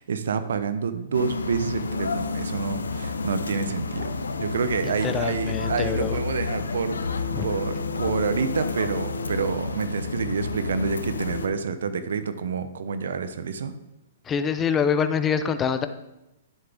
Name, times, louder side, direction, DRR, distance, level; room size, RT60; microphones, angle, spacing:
voice 1, 0.0-4.1 4.4-13.7, right 5 dB, 75° right, 11 dB, 0.8 m, -28 dB
sound 1, 1.1-11.5, left 4 dB, 85° left, 0.7 m, -30 dB
voice 2, 5.0-6.2 7.3-7.5 14.3-15.9, left 7 dB, 20° left, 10 dB, 0.7 m, -25 dB
10.5 x 7.3 x 3.5 m, 0.97 s
hypercardioid pair, 125°, 0 cm